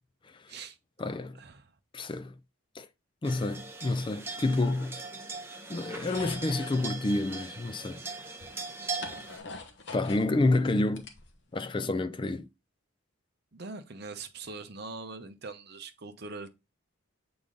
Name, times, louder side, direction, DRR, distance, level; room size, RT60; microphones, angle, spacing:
voice 1, 0.3-0.6 1.0-1.4 1.9-2.3 2.7-2.9 3.2-5.0 5.7-8.0 9.9-11.1 11.5-12.5, left 2 dB, 25° left, 0.4 m, -29 dB
voice 2, 1.4-1.7 13.5-16.5, right 3 dB, 50° right, 0.7 m, -42 dB
sound 1, 3.2-9.4, right 3 dB, 10° right, 0.7 m, -40 dB
sound 2, 5.9-6.8 7.9-8.0 8.4-10.3 10.7-11.7, left 4 dB, 55° left, 1.1 m, -43 dB
6.9 x 3.9 x 3.7 m
head